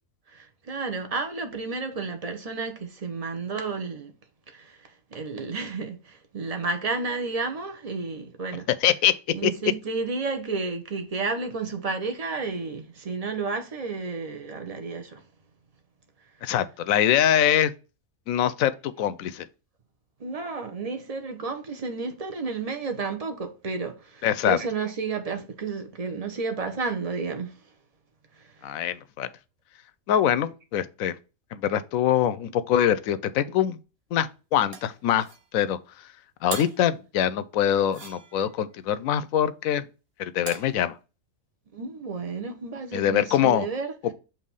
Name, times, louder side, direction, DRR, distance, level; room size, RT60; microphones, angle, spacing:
voice 1, 0.3-4.1 4.5-8.7 9.3-15.2 20.2-27.6 28.4-28.8 41.7-43.9, right 4 dB, 30° right, 0.9 m, -31 dB
voice 2, 8.8-9.1 9.4-9.5 16.4-17.7 18.3-19.5 24.2-24.6 28.6-29.3 30.1-31.1 31.5-33.8 34.1-35.3 35.5-35.8 36.4-39.8 40.2-40.9 42.9-43.7 44.0-44.1, left 10 dB, 80° left, 1.0 m, -23 dB
sound 1, 34.7-35.5 36.5-36.9 37.9-38.6 40.5-40.8, right 4 dB, 50° right, 1.1 m, -39 dB
6.8 x 3.0 x 5.5 m
omnidirectional pair, 1.4 m